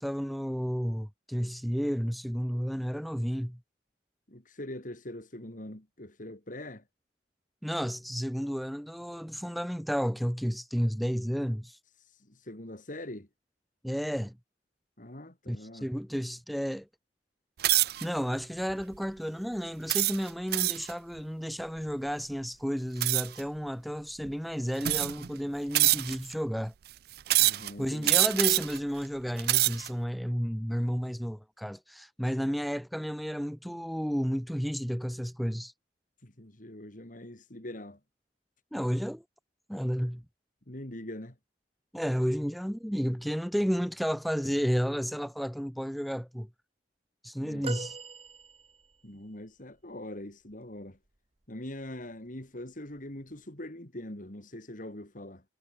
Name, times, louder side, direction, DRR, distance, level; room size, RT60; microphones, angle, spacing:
voice 1, 0.0-3.6 7.6-11.8 13.8-14.3 15.5-16.9 18.0-26.7 27.8-35.7 38.7-39.2 39.7-40.2 41.9-46.5 47.2-48.0, equal, ahead, 2.8 m, -32 dB
voice 2, 4.3-6.8 12.0-13.3 15.0-15.9 27.4-28.3 36.2-38.0 40.7-41.4 47.4-47.7 49.0-51.0 51.5-55.4, left 1 dB, 50° left, 3.6 m, -43 dB
sound 1, 17.6-18.1 18.7-19.0 19.9-20.9 23.0-23.4 24.2-24.3 24.8-25.3 25.7-26.3 27.3-27.7 28.0-28.8 29.3-29.9, right 17 dB, 60° right, 0.4 m, -25 dB
sound 2, 47.6-49.1 51.4-51.6 52.9-53.0, right 4 dB, 35° right, 1.1 m, -40 dB
head